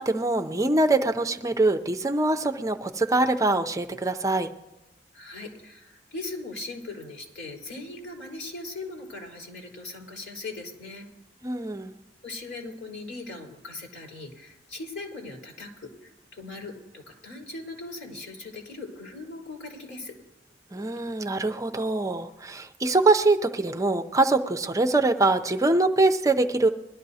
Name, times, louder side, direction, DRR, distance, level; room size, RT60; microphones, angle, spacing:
voice 1, 0.0-4.5 11.4-11.9 20.7-26.7, right 2 dB, 20° right, 6 dB, 0.5 m, -23 dB
voice 2, 5.1-11.1 12.2-20.1, left 2 dB, 85° left, 0 dB, 3.7 m, -39 dB
21.5 x 12.5 x 2.8 m, 0.95 s
head